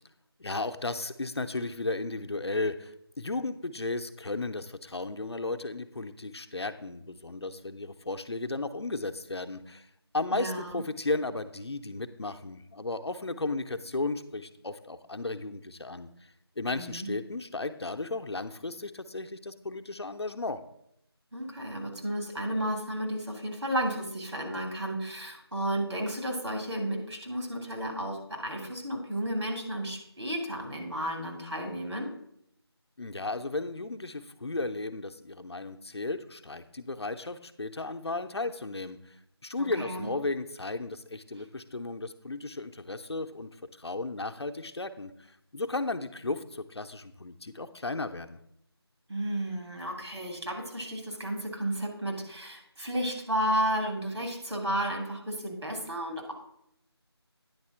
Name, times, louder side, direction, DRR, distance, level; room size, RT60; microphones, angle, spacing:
voice 1, 0.4-9.9 10.1-16.1 16.6-20.6 33.0-39.2 39.4-43.5 43.8-48.4, left 2 dB, 75° left, 7 dB, 0.7 m, -34 dB
voice 2, 10.3-10.8 16.7-17.1 21.3-32.1 39.6-40.1 49.1-56.3, equal, 85° right, 2 dB, 2.5 m, -33 dB
9.6 x 4.2 x 5.6 m, 0.75 s
figure-of-eight pair, 170°, 14 cm